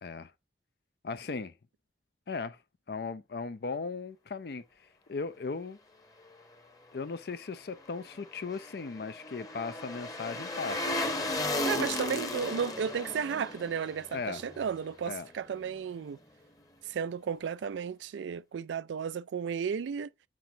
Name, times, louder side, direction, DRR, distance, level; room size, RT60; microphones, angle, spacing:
voice 1, 0.0-0.3 1.0-1.5 2.3-2.6 2.9-5.8 6.9-11.0 14.1-14.4 15.1-15.3, left 4 dB, 60° left, 0.5 m, -37 dB
sound 1, 8.1-15.3 15.6-15.7, left 2 dB, 20° left, 0.9 m, -35 dB
voice 2, 11.6-16.2 16.8-20.1, right 7 dB, 90° right, 0.3 m, -34 dB
7.6 x 5.0 x 2.7 m
head